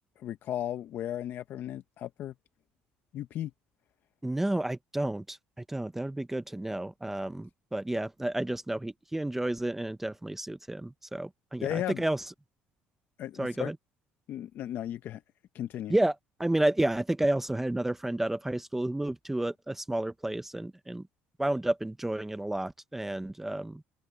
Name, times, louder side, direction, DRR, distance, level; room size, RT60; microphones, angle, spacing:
voice 1, 0.2-2.3 3.1-3.5 11.6-12.0 13.2-13.7 14.3-15.2 15.5-15.9, left 11 dB, 50° left, 0.6 m, -35 dB
voice 2, 4.2-12.2 13.4-13.8 15.9-21.0 21.4-23.8, right 1 dB, 5° right, 0.6 m, -31 dB
cardioid pair, 150°, 4 cm